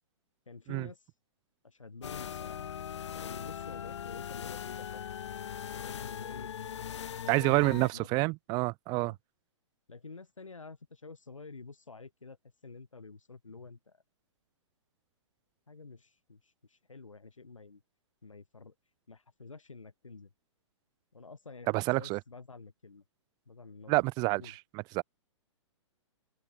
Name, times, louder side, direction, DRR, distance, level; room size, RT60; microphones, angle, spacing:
voice 1, 0.5-1.0 1.6-2.7 3.1-5.0 5.7-6.6 7.2-8.3 8.9-9.2 9.9-12.4 12.6-14.0 15.7-17.8 18.2-18.7 19.1-20.3 21.1-21.7 22.0-23.0 23.5-24.0 24.3-24.6, left 4 dB, 85° left, 3.7 m, -49 dB
sound 1, 2.0-7.9, left 9 dB, 65° left, 1.4 m, -40 dB
voice 2, 7.3-9.1 21.7-22.2 23.9-25.0, right 26 dB, 25° right, 0.4 m, -28 dB
open air
figure-of-eight pair, 120°, 16 cm